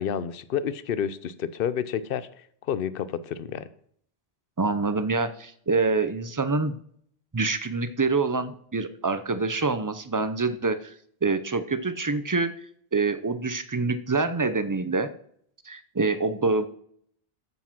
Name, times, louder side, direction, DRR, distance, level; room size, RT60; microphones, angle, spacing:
voice 1, 0.0-2.3 2.7-3.7, left 8 dB, 65° left, 15 dB, 0.8 m, -29 dB
voice 2, 4.6-6.8 7.3-10.9 11.2-12.5 12.9-15.1 15.6-16.7, right 3 dB, 25° right, 12 dB, 0.6 m, -26 dB
9.0 x 8.3 x 5.9 m, 0.64 s
omnidirectional pair, 1.0 m